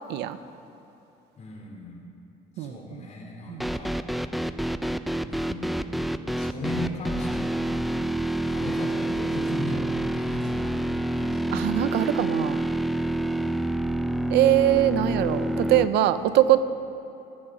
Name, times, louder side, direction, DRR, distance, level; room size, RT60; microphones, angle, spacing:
voice 1, 1.4-2.0 2.5-4.2 5.3-6.0 6.4-7.7 8.4-11.5, left 1 dB, 45° left, -1 dB, 4.0 m, -37 dB
voice 2, 2.6-3.0 3.5-3.6 11.5-12.6 14.3-16.6, right 13 dB, 85° right, 13 dB, 0.7 m, -22 dB
sound 1, 3.6-15.9, right 1 dB, ahead, 0.5 m, -27 dB
17.5 x 14.0 x 5.0 m, 2.8 s
cardioid pair, 110°, 17 cm